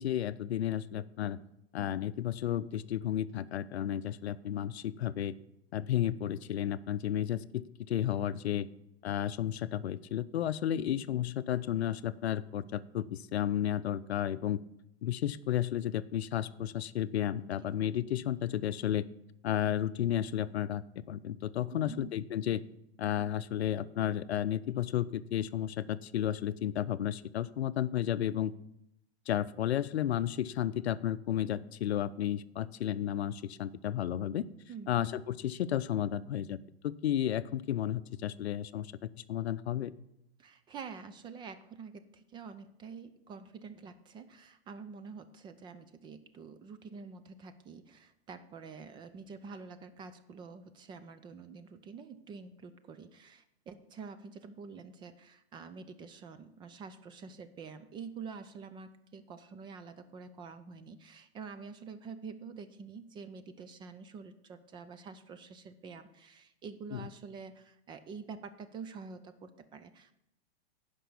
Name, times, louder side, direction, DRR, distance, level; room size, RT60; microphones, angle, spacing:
voice 1, 0.0-1.4 1.7-5.3 5.7-8.7 9.0-14.6 15.0-19.1 19.4-22.6 23.0-28.5 29.3-34.5 34.9-36.6 36.8-39.9 66.9-67.1, left 11 dB, 85° left, 15 dB, 0.6 m, -32 dB
voice 2, 8.2-8.7 17.4-17.7 21.7-22.1 34.7-35.1 40.4-70.1, right 5 dB, 15° right, 11 dB, 0.4 m, -47 dB
10.0 x 5.3 x 7.0 m, 0.82 s
hypercardioid pair, 125°, 32 cm